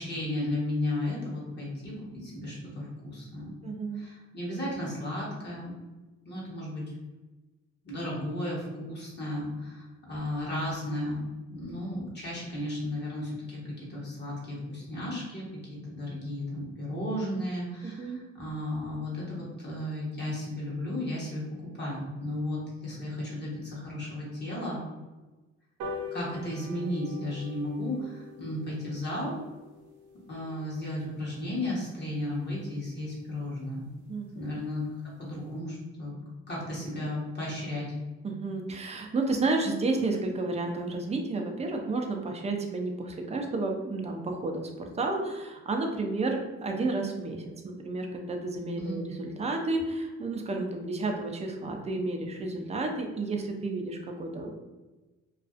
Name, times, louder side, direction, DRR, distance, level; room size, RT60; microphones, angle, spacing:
voice 1, 0.0-3.5 3.9-5.7 6.2-6.8 7.8-21.4 21.7-24.8 26.1-29.4 30.3-33.8 34.3-36.2 36.5-37.9 48.7-49.0, left 1 dB, 35° left, -6 dB, 1.0 m, -34 dB
voice 2, 3.6-4.1 17.8-18.2 34.1-34.4 38.2-54.6, right 3 dB, 20° right, 2 dB, 0.4 m, -31 dB
sound 1, 25.8-32.5 33.0-33.1 33.4-33.5 33.8-33.9 34.2-34.3 34.5-34.8 35.2-35.3, left 3 dB, 85° right, 0.6 m, -44 dB
2.4 x 2.3 x 2.4 m, 1.2 s
cardioid pair, 90°, 30 cm